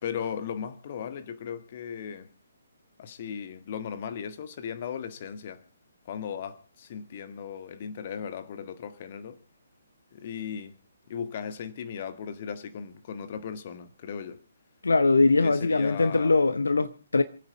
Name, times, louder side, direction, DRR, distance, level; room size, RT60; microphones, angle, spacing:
voice 1, 0.0-2.3 3.0-5.6 6.0-9.4 10.1-10.8 11.1-14.4 15.4-16.4, left 7 dB, 40° left, 1.4 m, -37 dB
voice 2, 14.8-17.2, left 3 dB, 65° left, 1.0 m, -22 dB
27.5 x 9.2 x 4.5 m
figure-of-eight pair, 135°, 0 cm